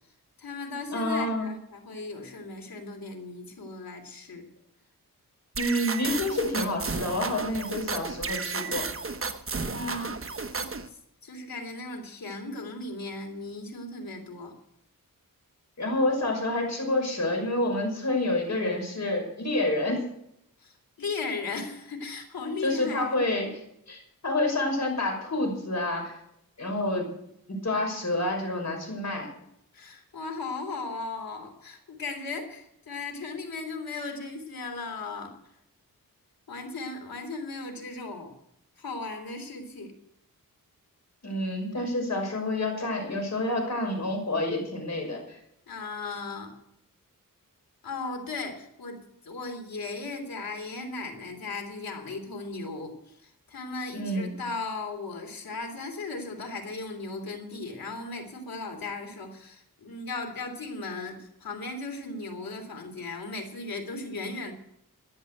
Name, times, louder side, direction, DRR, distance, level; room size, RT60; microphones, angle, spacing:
voice 1, 0.4-4.4 9.7-14.5 20.6-23.2 29.7-35.3 36.5-38.3 38.8-39.9 45.7-46.6 47.8-64.5, left 3 dB, 90° left, 3 dB, 3.2 m, -37 dB
voice 2, 0.9-1.5 5.6-8.9 15.8-20.0 22.6-23.5 23.9-26.1 26.6-27.1 27.5-29.3 41.2-45.2 53.9-54.3, left 1 dB, 50° left, 2 dB, 5.9 m, -28 dB
sound 1, 5.5-10.9, right 4 dB, 40° right, 1.2 m, -33 dB
13.5 x 11.0 x 7.9 m, 0.76 s
wide cardioid pair, 75°, 34 cm